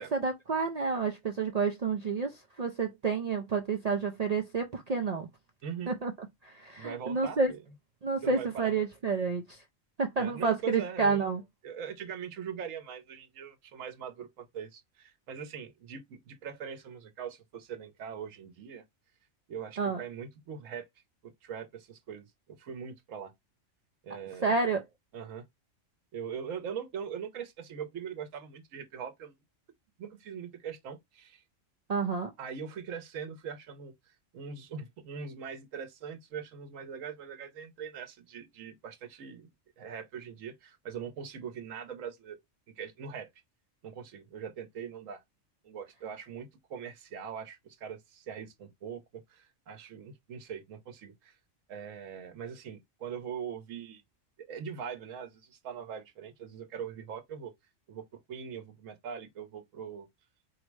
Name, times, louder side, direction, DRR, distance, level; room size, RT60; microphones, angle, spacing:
voice 1, 0.0-5.3 5.9-7.5 8.0-9.6 10.0-11.4 19.8-20.0 24.4-24.8 31.9-32.3, right 4 dB, 65° right, 0.4 m, -30 dB
voice 2, 6.8-7.6 8.2-8.8 10.2-11.2 11.6-18.8 19.5-20.9 21.4-23.3 24.0-24.6 25.1-25.5 26.1-29.4 30.0-31.4 32.4-39.5 39.8-42.4 42.8-43.3 43.8-45.2 45.6-51.4 51.7-54.0 54.4-57.5 57.9-60.1, right 7 dB, 85° right, 1.2 m, -41 dB
4.7 x 2.1 x 4.6 m
omnidirectional pair, 1.3 m